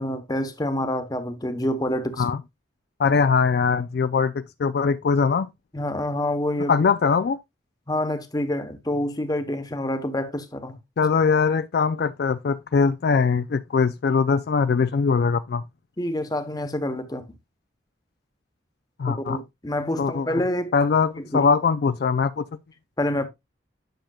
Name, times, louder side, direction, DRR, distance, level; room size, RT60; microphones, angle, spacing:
voice 1, 0.0-2.2 5.7-6.7 7.9-10.8 16.0-17.2 19.1-20.7 21.3-21.5 23.0-23.3, left 1 dB, 20° left, 0.9 m, -27 dB
voice 2, 3.0-5.5 6.7-7.4 11.0-15.6 19.0-19.4 20.0-20.4 20.7-22.4, left 5 dB, 55° left, 0.3 m, -21 dB
10.5 x 6.5 x 2.3 m
head